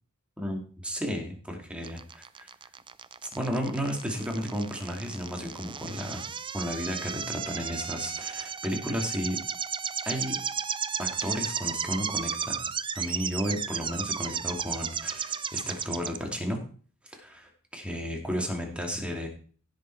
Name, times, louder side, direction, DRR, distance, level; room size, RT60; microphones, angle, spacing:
voice 1, 0.4-2.5 3.2-6.3 6.5-9.4 10.0-10.4 11.0-16.6 17.1-19.3, equal, 5° right, 1 dB, 2.4 m, -33 dB
sound 1, 1.8-16.2, right 7 dB, 25° right, 0.5 m, -34 dB
16.0 x 6.7 x 4.6 m, 0.43 s
head